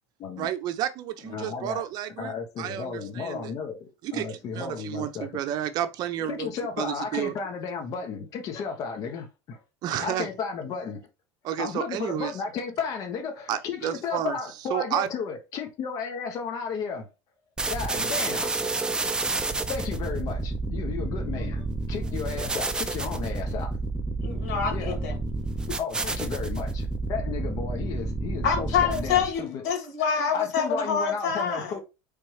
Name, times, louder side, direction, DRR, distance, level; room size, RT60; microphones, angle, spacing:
voice 1, 0.4-3.5 4.0-6.5 6.8-7.3 9.8-10.3 11.4-12.3 13.5-14.4 14.7-15.1, right 11 dB, 50° right, 0.7 m, -31 dB
voice 2, 1.2-1.8 2.2-5.3 6.2-9.6 10.0-11.0 11.6-17.1 17.7-18.5 19.7-23.7 24.7-25.0 25.8-29.6 30.3-31.8, left 5 dB, 40° left, 1.1 m, -34 dB
sound 1, 17.6-29.4, right 3 dB, 10° right, 0.5 m, -30 dB
voice 3, 24.2-25.1 28.4-31.7, left 6 dB, 80° left, 1.9 m, -26 dB
4.5 x 3.5 x 3.2 m
cardioid pair, 140°, 9 cm